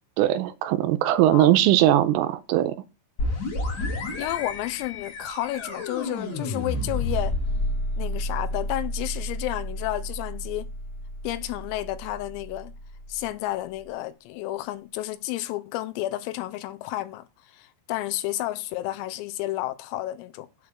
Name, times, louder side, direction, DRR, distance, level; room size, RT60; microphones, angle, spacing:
voice 1, 0.2-2.8, right 13 dB, 80° right, 3.2 m, -20 dB
sound 1, 3.2-12.7, left 1 dB, 40° left, 3.0 m, -31 dB
voice 2, 4.2-7.3 8.0-10.7 11.2-12.7 13.1-20.5, left 15 dB, 85° left, 3.4 m, -31 dB
8.5 x 4.8 x 7.2 m
omnidirectional pair, 6.0 m